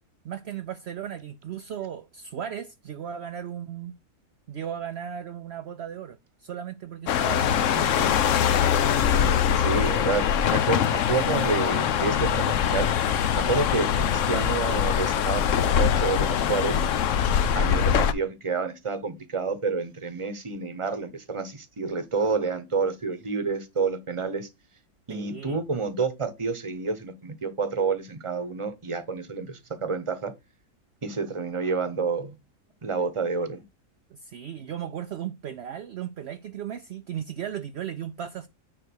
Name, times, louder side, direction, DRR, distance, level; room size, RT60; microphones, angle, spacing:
voice 1, 0.2-3.9 4.5-8.2 25.1-25.6 34.1-38.5, right 9 dB, 65° right, 0.7 m, -36 dB
sound 1, 7.1-18.1, left 8 dB, 65° left, 0.9 m, -23 dB
voice 2, 9.5-16.8 17.2-24.5 25.1-30.3 31.0-32.3 32.8-33.6, right 4 dB, 25° right, 1.0 m, -29 dB
9.9 x 3.3 x 6.3 m
omnidirectional pair, 1.6 m